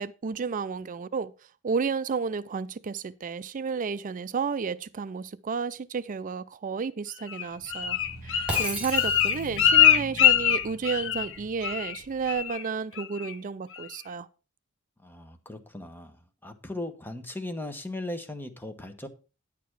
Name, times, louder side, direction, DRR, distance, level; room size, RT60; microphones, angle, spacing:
voice 1, 0.0-1.3 1.6-14.3, right 5 dB, 40° right, 0.4 m, -32 dB
Bird, 7.3-11.4 11.6-12.0 12.3-12.6 13.0-13.3 13.7-13.8, left 10 dB, 65° left, 1.0 m, -23 dB
sound 1, 7.5-12.5, equal, 85° left, 2.9 m, -45 dB
Shatter, 8.5-9.7, right 2 dB, 5° right, 3.5 m, -34 dB
voice 2, 15.0-16.2 16.4-19.1, left 1 dB, 10° left, 1.1 m, -37 dB
10.0 x 6.8 x 4.7 m
head